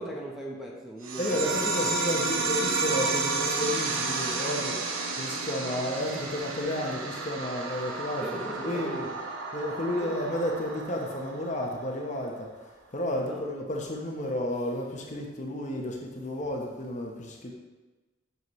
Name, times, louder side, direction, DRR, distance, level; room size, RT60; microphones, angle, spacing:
voice 1, 0.0-1.7 8.2-9.2 9.9-10.1 13.2-13.4, right 1 dB, ahead, -3 dB, 0.9 m, -38 dB
sound 1, 1.0-12.1, right 3 dB, 85° right, 0.8 m, -31 dB
voice 2, 1.2-4.8 5.2-9.1 9.5-12.5 12.9-17.5, left 1 dB, 35° left, 0 dB, 0.9 m, -32 dB
7.9 x 6.1 x 3.1 m, 1.2 s
head